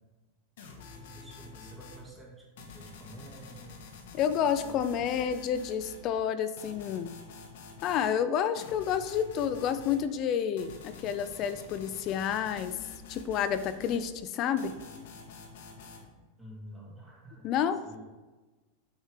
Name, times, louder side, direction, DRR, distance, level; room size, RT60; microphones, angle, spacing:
sound 1, 0.6-2.0 2.6-6.1 6.6-8.1 8.6-10.0 10.6-14.1 14.6-16.1, left 4 dB, 75° left, 1.5 m, -48 dB
voice 1, 0.9-3.8 4.6-5.2 16.4-17.5 17.8-18.0, right 1 dB, 5° right, -5 dB, 2.4 m, -49 dB
voice 2, 4.1-7.1 7.8-12.8 13.1-14.7 17.4-17.8, left 8 dB, 35° left, 12 dB, 0.5 m, -29 dB
8.1 x 4.4 x 5.0 m, 1.2 s
supercardioid pair, 150°, 0 cm